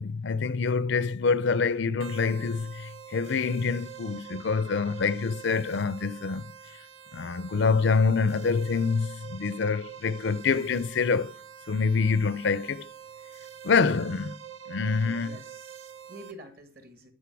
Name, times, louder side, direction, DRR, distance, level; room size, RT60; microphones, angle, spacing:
voice 1, 0.0-6.4 7.1-11.4 11.7-12.9 13.6-14.3 14.7-15.4, left 5 dB, 55° left, 0.5 m, -26 dB
sound 1, 2.0-16.3, right 8 dB, 65° right, 0.9 m, -45 dB
voice 2, 14.8-17.1, right 1 dB, 45° right, 2.2 m, -48 dB
13.0 x 5.3 x 8.3 m
head